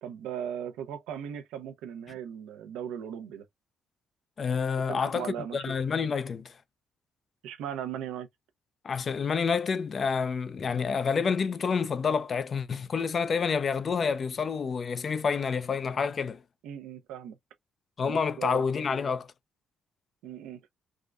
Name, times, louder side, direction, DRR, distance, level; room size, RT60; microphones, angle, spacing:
voice 1, 0.0-3.4 4.9-5.6 7.4-8.3 16.6-17.4 18.0-18.6 20.2-20.7, right 9 dB, 90° right, 0.6 m, -38 dB
voice 2, 4.4-6.5 8.8-16.4 18.0-19.3, left 5 dB, 45° left, 0.4 m, -28 dB
3.6 x 2.1 x 2.3 m
cardioid pair, 90°, 0 cm